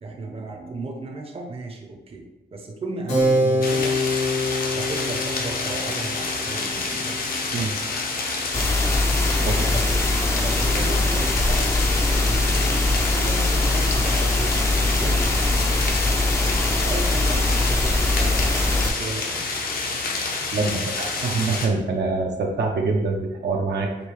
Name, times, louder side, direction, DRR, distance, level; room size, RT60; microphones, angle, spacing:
voice 1, 0.0-4.0 4.7-7.3 9.4-14.6 14.9-15.9 16.8-19.5, right 2 dB, 35° right, 2 dB, 0.6 m, -35 dB
Keyboard (musical), 3.1-9.2, left 1 dB, 85° left, 1.5 m, -26 dB
sound 1, 3.6-21.7, left 3 dB, 55° left, 0.7 m, -28 dB
sound 2, 8.5-18.9, left 2 dB, 15° left, 0.4 m, -22 dB
voice 2, 20.5-23.9, right 3 dB, 70° right, 1 dB, 0.6 m, -25 dB
5.2 x 2.7 x 3.1 m, 1.0 s
wide cardioid pair, 120°, 18 cm